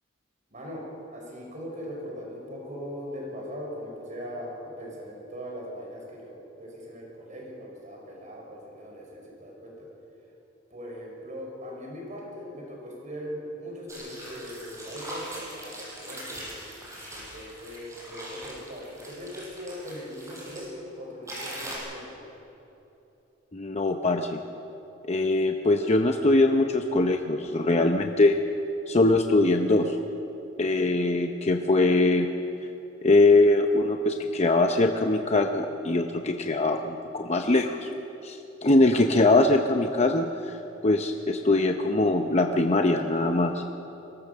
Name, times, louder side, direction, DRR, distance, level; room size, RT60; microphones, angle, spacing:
voice 1, 0.5-0.9 1.1-9.9 10.7-16.4 17.1-22.2, equal, 40° right, -2 dB, 5.2 m, -40 dB
sound 1, 13.9-20.7 21.3-21.8, right 1 dB, 15° right, 6.4 m, -41 dB
voice 2, 23.5-24.4 25.1-28.4 28.9-30.0 30.6-32.3 33.0-37.9 38.2-40.5 40.8-43.6, left 2 dB, 35° left, 4 dB, 0.8 m, -22 dB
23.0 x 17.5 x 6.8 m, 3.0 s
head